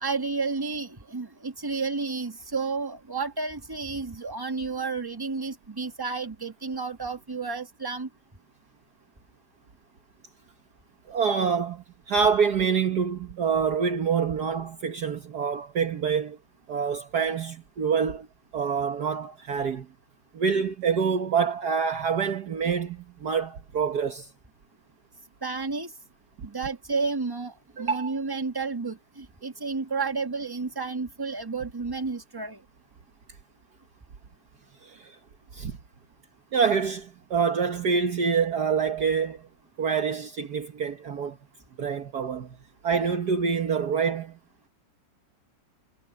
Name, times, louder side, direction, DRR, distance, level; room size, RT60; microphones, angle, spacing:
voice 1, 0.0-8.1 25.4-25.9 26.4-32.6, right 4 dB, 15° right, 1.3 m, -31 dB
voice 2, 11.1-16.4 16.7-18.3 18.5-19.9 20.3-24.3 27.8-28.1 34.8-35.2 35.5-35.8 36.5-39.5 39.8-41.4 41.8-42.6 42.8-44.4, right 6 dB, 60° right, 1.7 m, -26 dB
omnidirectional pair, 2.1 m